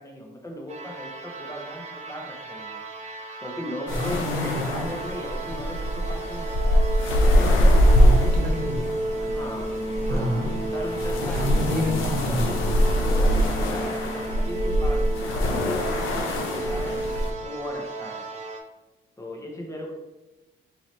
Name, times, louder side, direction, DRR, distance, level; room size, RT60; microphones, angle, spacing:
voice 1, 0.0-2.8 3.4-6.9 7.2-7.8 8.1-8.4 9.2-9.7 10.1-11.9 12.3-17.0 17.4-18.3 19.2-19.9, left 1 dB, 15° left, 0 dB, 0.7 m, -37 dB
sound 1, 0.7-18.6, right 2 dB, 35° right, 0.6 m, -33 dB
sound 2, 3.9-17.3, equal, 90° left, 0.6 m, -23 dB
voice 2, 3.9-4.9 7.9-9.0 10.1-10.5 11.3-12.5, left 1 dB, 50° right, 1 dB, 0.9 m, -28 dB
4.1 x 2.9 x 3.1 m, 1.0 s
cardioid pair, 90°, 20 cm